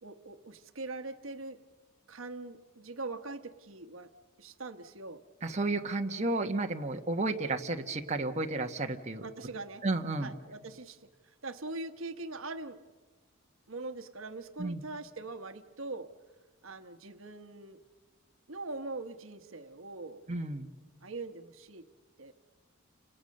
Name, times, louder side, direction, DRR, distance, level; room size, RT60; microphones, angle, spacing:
voice 1, 0.0-1.6 2.1-4.1 4.4-5.2 9.2-9.8 10.2-12.9 13.7-16.1 16.6-17.8 18.5-20.2 21.0-21.8 22.2-22.3, right 3 dB, 70° right, 8 dB, 1.2 m, -42 dB
voice 2, 5.4-9.2 9.8-10.3 14.6-14.8 20.3-20.7, right 2 dB, 35° right, 3 dB, 1.4 m, -32 dB
30.0 x 27.0 x 6.6 m, 1.3 s
head